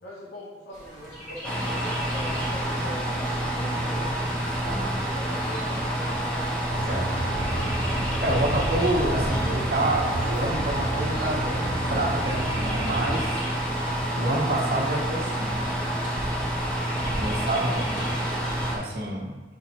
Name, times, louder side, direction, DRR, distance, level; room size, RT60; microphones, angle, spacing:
voice 1, 0.0-4.2 4.8-6.5 17.5-17.8, left 1 dB, 80° left, -6 dB, 1.4 m, -41 dB
Chirp tweet, 0.7-18.7, equal, 45° left, 1.8 m, -38 dB
sound 1, 1.4-18.8, right 1 dB, 5° left, 0.8 m, -28 dB
voice 2, 4.6-5.0 6.9-7.1 8.2-13.4 14.2-15.6 17.2-18.0 18.7-19.3, right 1 dB, 60° right, -2 dB, 1.2 m, -28 dB
sound 2, 6.7-13.2, right 1 dB, 75° right, 0.6 m, -33 dB
5.6 x 4.3 x 4.3 m, 1.2 s
head